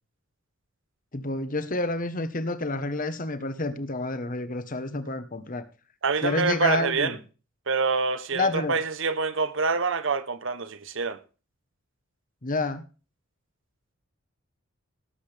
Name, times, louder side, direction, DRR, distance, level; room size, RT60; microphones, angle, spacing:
voice 1, 1.1-5.7 6.2-7.2 8.3-8.8 12.4-12.8, left 2 dB, 40° left, 1.1 m, -29 dB
voice 2, 6.0-7.2 7.7-11.2, right 4 dB, 65° right, 1.0 m, -26 dB
17.5 x 7.8 x 3.4 m
head